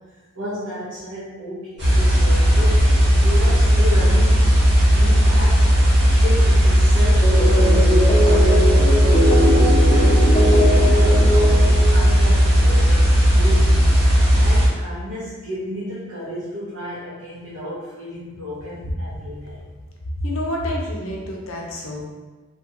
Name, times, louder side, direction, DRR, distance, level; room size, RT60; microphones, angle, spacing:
voice 1, 0.1-4.5 4.9-5.7 6.1-13.9 14.3-19.6, equal, 85° right, -10 dB, 0.7 m, -32 dB
sound 1, 1.8-14.7, equal, 50° right, 0.8 m, -15 dB
sound 2, 7.2-12.4, equal, 25° left, 0.4 m, -21 dB
voice 2, 20.2-22.0, left 1 dB, 75° left, -1 dB, 0.6 m, -27 dB
2.8 x 2.3 x 2.7 m, 1.3 s
head